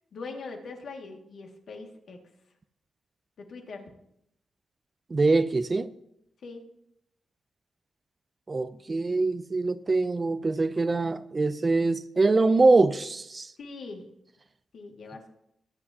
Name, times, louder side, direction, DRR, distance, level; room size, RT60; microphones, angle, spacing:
voice 1, 0.1-2.2 3.5-3.9 6.4-6.6 13.6-14.0 14.7-15.3, left 3 dB, 70° left, 2.1 m, -41 dB
voice 2, 5.1-5.9 8.5-13.5, right 3 dB, 30° right, 0.5 m, -24 dB
22.5 x 7.9 x 2.9 m
cardioid pair, 110°, 0 cm